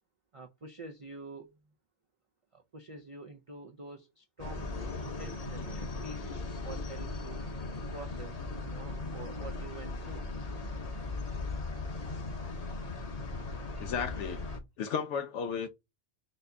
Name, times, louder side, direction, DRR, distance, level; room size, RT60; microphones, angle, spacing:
voice 1, 0.3-1.6 2.5-7.4 7.9-10.3, right 2 dB, 40° right, 0.5 m, -47 dB
sound 1, 4.4-14.6, left 3 dB, 40° left, 0.8 m, -38 dB
voice 2, 13.8-14.4 14.8-15.7, left 6 dB, 85° left, 1.0 m, -33 dB
4.1 x 3.4 x 2.6 m
omnidirectional pair, 1.2 m